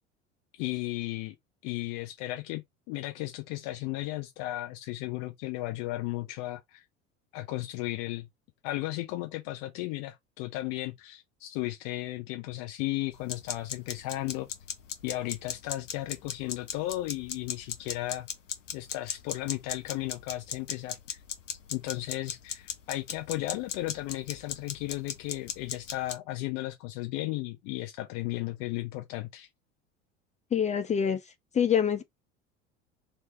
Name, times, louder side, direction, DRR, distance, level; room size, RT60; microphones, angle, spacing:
voice 1, 0.6-1.3 1.6-2.6 2.9-6.8 7.3-8.3 8.6-14.5 15.0-18.3 18.7-21.2 21.7-29.5, left 17 dB, 50° left, 0.9 m, -35 dB
sound 1, 13.1-26.2, left 8 dB, 75° left, 0.9 m, -38 dB
voice 2, 30.5-31.2 31.5-32.0, left 8 dB, 20° left, 0.5 m, -25 dB
3.3 x 2.9 x 4.2 m
figure-of-eight pair, 70°, 37 cm